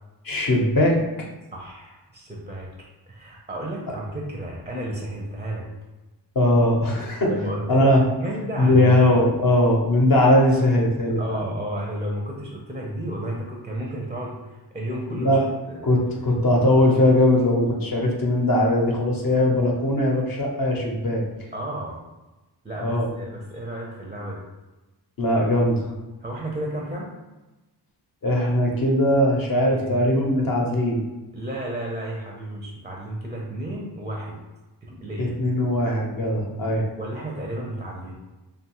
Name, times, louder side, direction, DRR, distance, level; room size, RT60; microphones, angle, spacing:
voice 1, 0.2-1.0 6.4-7.3 7.7-8.0 8.6-11.4 15.2-15.4 15.8-21.2 22.8-23.1 25.2-25.9 28.2-31.1 35.2-36.9, left 1 dB, 50° left, -1 dB, 0.7 m, -20 dB
voice 2, 1.5-2.7 3.1-5.7 7.3-7.9 8.2-9.0 11.2-15.4 15.7-15.9 21.5-22.0 22.6-24.5 26.2-27.1 29.7-30.0 31.3-34.4 34.8-35.3 37.0-38.1, right 1 dB, 15° right, -2 dB, 0.4 m, -32 dB
2.6 x 2.3 x 2.9 m, 1.1 s
wide cardioid pair, 70°, 44 cm